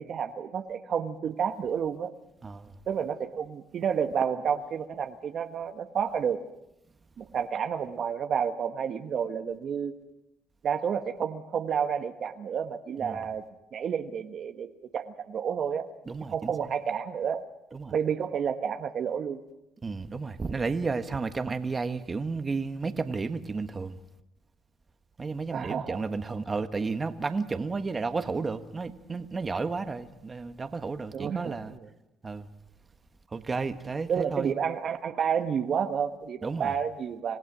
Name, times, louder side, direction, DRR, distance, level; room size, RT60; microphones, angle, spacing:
voice 1, 0.0-2.1 2.9-6.4 7.2-9.9 10.6-13.4 13.7-14.7 14.9-15.9 16.3-17.4 17.9-19.4 25.5-26.0 31.1-31.6 34.1-37.4, right 7 dB, 55° right, 1.3 m, -30 dB
voice 2, 2.4-2.7 13.0-13.2 16.1-16.7 17.7-17.9 19.8-24.0 25.2-31.8 32.2-32.5 33.3-34.5 36.4-36.8, right 4 dB, 30° right, 1.4 m, -32 dB
27.5 x 16.5 x 6.2 m
supercardioid pair, 75°, 0 cm